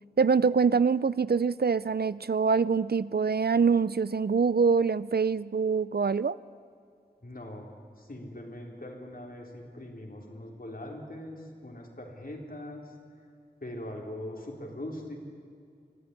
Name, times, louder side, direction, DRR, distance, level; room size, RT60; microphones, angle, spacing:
voice 1, 0.2-6.4, right 5 dB, 65° right, 18 dB, 0.5 m, -24 dB
voice 2, 7.2-7.7 8.0-12.9 13.6-15.2, left 1 dB, 55° left, 1 dB, 4.0 m, -41 dB
24.0 x 14.5 x 9.7 m, 2.4 s
wide cardioid pair, 50°, 17 cm